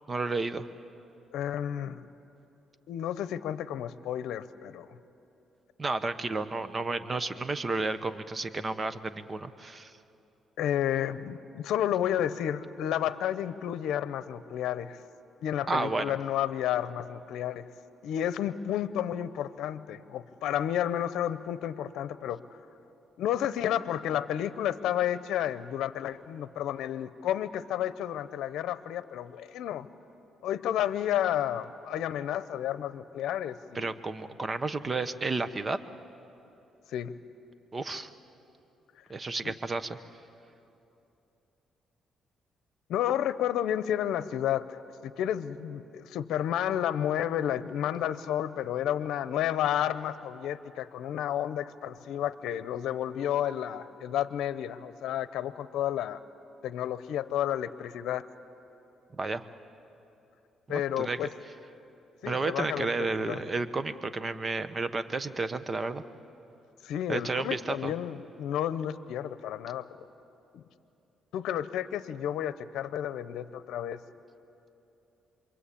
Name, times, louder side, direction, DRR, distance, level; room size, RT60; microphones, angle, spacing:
voice 1, 0.1-0.7 5.8-9.9 15.7-16.2 33.7-35.8 37.7-38.1 39.1-40.0 59.2-59.4 60.7-61.2 62.2-66.0 67.1-67.9, right 3 dB, 30° right, 11 dB, 1.1 m, -32 dB
voice 2, 1.3-2.0 2.9-4.9 10.6-15.0 15.4-17.7 18.0-22.4 23.2-29.9 30.4-33.9 36.9-37.2 39.4-39.5 42.9-56.2 56.6-58.2 60.7-61.3 62.2-63.4 66.8-69.9 70.5-70.6 71.3-74.0, left 10 dB, 85° left, 14 dB, 0.7 m, -31 dB
27.5 x 23.0 x 8.6 m, 2.9 s
cardioid pair, 90°, 0 cm